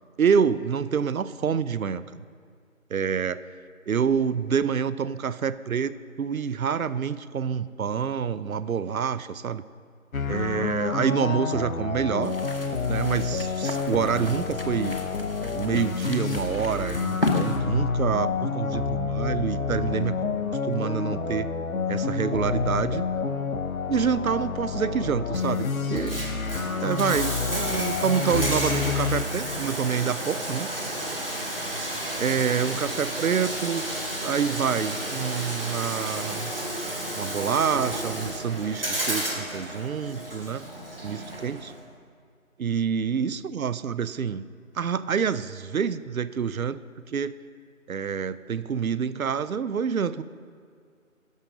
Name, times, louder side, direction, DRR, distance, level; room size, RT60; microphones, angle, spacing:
voice 1, 0.2-2.2 2.9-3.4 3.9-9.6 10.3-12.4 12.9-15.0 15.5-20.2 20.6-21.5 21.9-23.0 23.9-26.2 26.8-30.7 32.2-33.9 34.2-36.5 37.1-40.7 41.0-41.7 42.6-44.5 44.7-46.8 47.1-47.4 47.9-50.2, right 7 dB, 80° right, 16 dB, 0.5 m, -27 dB
sound 1, 10.1-29.2, left 5 dB, 75° left, 0.7 m, -29 dB
sound 2, 12.2-17.6, left 2 dB, 40° left, 0.8 m, -33 dB
Bathtub (filling or washing), 25.8-41.8, right 1 dB, 40° right, 1.3 m, -32 dB
12.0 x 5.5 x 5.0 m, 2.1 s
figure-of-eight pair, 170°, 42 cm